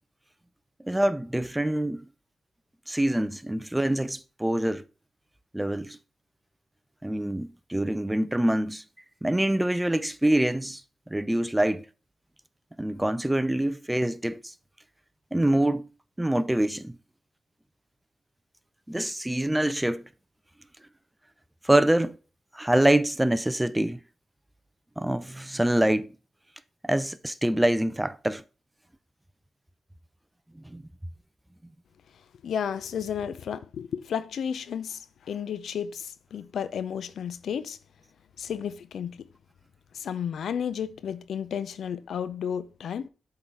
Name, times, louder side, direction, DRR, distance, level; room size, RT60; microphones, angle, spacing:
voice 1, 0.8-2.0 2.9-4.8 5.5-6.0 7.0-8.8 9.2-10.8 11.1-11.8 12.8-14.5 15.3-15.9 16.2-17.0 18.9-20.0 21.6-22.2 22.5-24.0 25.0-26.1 26.8-28.4 30.6-30.8, right 1 dB, 10° right, 0.5 m, -25 dB
voice 2, 32.4-37.8 38.4-39.2 39.9-43.1, left 8 dB, 80° left, 0.5 m, -32 dB
7.9 x 3.9 x 4.6 m
cardioid pair, 60°, 0 cm